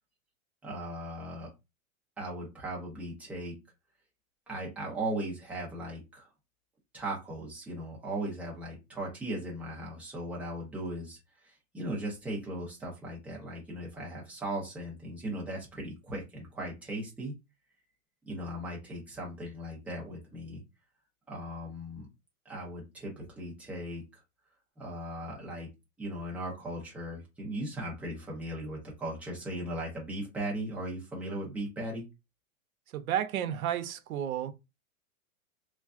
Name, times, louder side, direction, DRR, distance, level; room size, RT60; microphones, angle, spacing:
voice 1, 0.6-1.5 2.2-3.5 4.5-6.3 6.9-17.3 18.3-20.6 21.3-22.1 22.5-24.0 24.8-25.7 26.0-32.1, right 1 dB, 5° right, 0.5 m, -38 dB
voice 2, 32.9-34.5, right 10 dB, 80° right, 0.7 m, -32 dB
3.2 x 2.3 x 2.4 m
hypercardioid pair, 140°, 42 cm